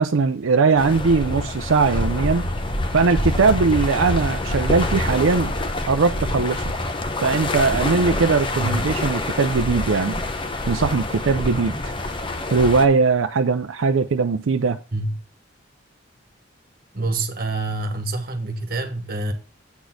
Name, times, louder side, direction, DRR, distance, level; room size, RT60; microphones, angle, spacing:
voice 1, 0.0-2.5 2.9-5.5 5.9-6.6 7.2-10.1 10.7-11.9 12.5-14.8, right 4 dB, 85° right, 0.5 m, -20 dB
sound 1, 0.8-12.8, left 1 dB, 25° left, 0.8 m, -26 dB
voice 2, 16.9-19.3, right 2 dB, 50° right, 1.5 m, -26 dB
8.2 x 4.1 x 6.2 m
head